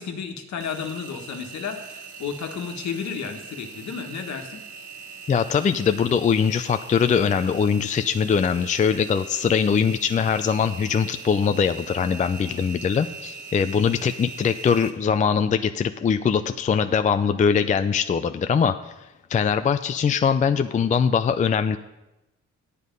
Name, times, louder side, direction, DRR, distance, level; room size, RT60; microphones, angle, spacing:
voice 1, 0.0-4.6, left 6 dB, 65° left, 4 dB, 1.5 m, -32 dB
Engine, 0.6-14.9, right 5 dB, 80° right, 1.3 m, -41 dB
voice 2, 5.3-18.7 19.3-21.8, left 6 dB, 25° left, 9 dB, 0.4 m, -22 dB
9.4 x 8.3 x 5.3 m, 0.97 s
cardioid pair, 90°, 30 cm